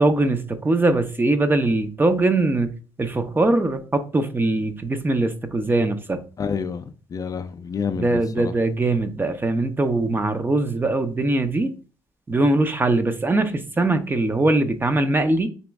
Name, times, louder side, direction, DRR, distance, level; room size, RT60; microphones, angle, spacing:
voice 1, 0.0-2.7 3.0-6.2 8.0-11.7 12.3-15.5, right 2 dB, 20° right, 0.6 m, -21 dB
voice 2, 6.4-8.5, left 6 dB, 35° left, 0.4 m, -29 dB
4.1 x 3.0 x 3.5 m
cardioid pair, 85°, 10 cm